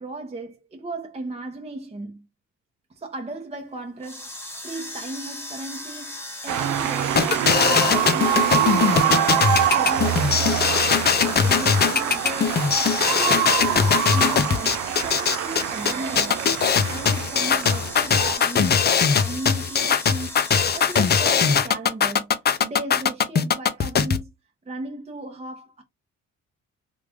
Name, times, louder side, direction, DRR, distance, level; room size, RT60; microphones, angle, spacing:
voice 1, 0.0-2.3 2.9-4.3 4.6-6.2 6.4-9.3 9.7-10.8 11.2-12.7 13.1-16.5 16.8-18.9 19.2-20.3 20.7-24.3 24.7-25.8, right 2 dB, 20° right, 0.8 m, -35 dB
sound 1, 4.0-21.2, left 1 dB, 10° left, 1.0 m, -37 dB
sound 2, 6.5-18.3, right 10 dB, 80° right, 0.5 m, -25 dB
sound 3, 7.2-24.2, left 6 dB, 35° left, 0.5 m, -20 dB
3.2 x 2.5 x 3.4 m
cardioid pair, 90°, 30 cm